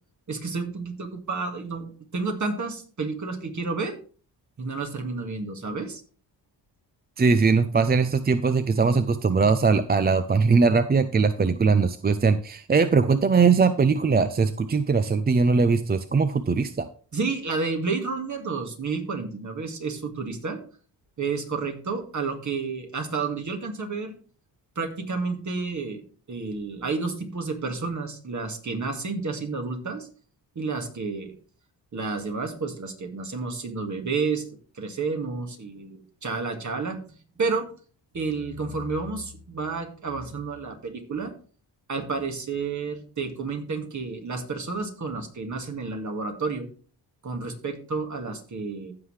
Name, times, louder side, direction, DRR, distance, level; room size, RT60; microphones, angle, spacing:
voice 1, 0.3-3.9 4.6-6.0 17.1-20.6 21.2-24.1 24.8-26.0 26.3-30.1 30.6-31.3 31.9-34.4 34.7-37.0 37.4-37.7 38.1-41.3 41.9-46.7 47.2-48.9, right 4 dB, 45° right, 4 dB, 2.0 m, -30 dB
voice 2, 7.2-16.9, right 4 dB, 25° right, 11 dB, 0.5 m, -21 dB
15.0 x 5.7 x 3.3 m, 0.41 s
cardioid pair, 85°, 42 cm